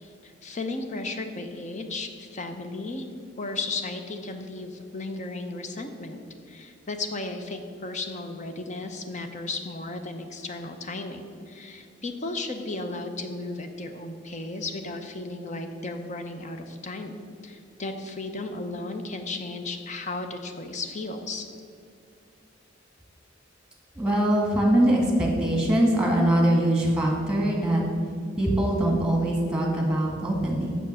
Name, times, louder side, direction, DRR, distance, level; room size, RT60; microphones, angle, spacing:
voice 1, 0.0-3.1 3.4-6.2 6.5-21.5, left 2 dB, 40° left, 6 dB, 0.8 m, -35 dB
voice 2, 24.0-27.8 28.4-30.8, right 1 dB, 5° right, -1 dB, 1.8 m, -22 dB
7.2 x 6.4 x 6.5 m, 2.3 s
head